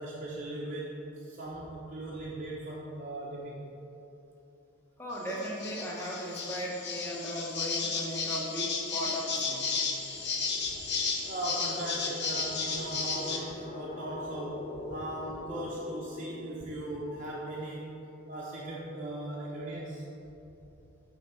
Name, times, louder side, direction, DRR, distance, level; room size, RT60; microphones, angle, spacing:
voice 1, 0.0-3.6 10.7-10.8 11.3-17.9 18.3-20.0, right 1 dB, 35° right, -5 dB, 0.7 m, -38 dB
voice 2, 5.0-9.8, equal, 10° left, -3 dB, 0.9 m, -37 dB
sound 1, 5.1-13.4, left 5 dB, 50° left, 0.8 m, -33 dB
sound 2, 7.5-17.9, left 3 dB, 25° left, 0.3 m, -46 dB
8.1 x 3.5 x 5.5 m, 2.9 s
head